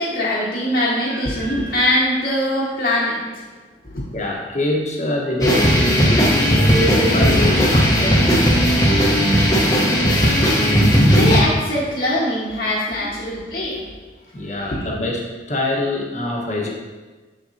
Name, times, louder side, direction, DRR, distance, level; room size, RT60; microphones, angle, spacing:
voice 1, 0.0-3.4 3.8-4.0 11.1-13.8 14.7-14.8, left 1 dB, 65° left, -9 dB, 1.4 m, -22 dB
voice 2, 4.1-8.4 13.0-13.1 14.3-15.2 15.5-16.7, left 1 dB, 40° left, -1 dB, 1.2 m, -24 dB
sound 1, 5.4-11.4, equal, 20° left, 1.0 m, -16 dB
7.4 x 7.0 x 2.7 m, 1.3 s
head